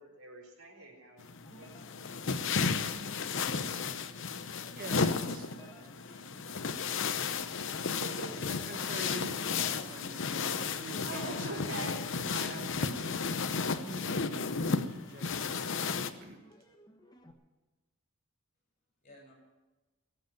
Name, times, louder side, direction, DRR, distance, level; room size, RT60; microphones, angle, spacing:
voice 1, 0.0-1.7 2.3-3.6 7.7-8.3 11.0-12.0, right 2 dB, 85° right, 0 dB, 4.0 m, -44 dB
sound 1, 1.2-16.1, left 5 dB, 60° left, 0.8 m, -33 dB
sound 2, 1.4-17.3, equal, 20° left, 1.3 m, -57 dB
voice 2, 4.7-7.1 8.5-11.6 12.3-13.5 13.8-15.8 16.2-16.4, right 2 dB, 45° right, 4 dB, 1.4 m, -47 dB
voice 3, 10.2-11.3 19.0-19.3, left 1 dB, 35° left, -1 dB, 6.5 m, -51 dB
19.5 x 8.1 x 9.1 m, 1.1 s
head